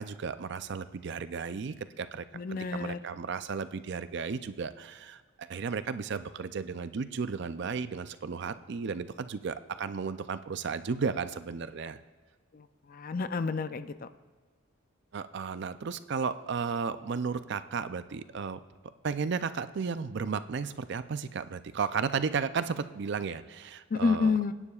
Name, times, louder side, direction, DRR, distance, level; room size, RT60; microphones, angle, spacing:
voice 1, 0.0-12.0 15.1-18.6 19.0-24.4, right 5 dB, 60° right, 12 dB, 0.4 m, -34 dB
voice 2, 2.3-3.0 12.9-13.9 23.9-24.5, left 4 dB, 45° left, 12 dB, 0.4 m, -29 dB
25.5 x 9.8 x 2.4 m, 1.4 s
head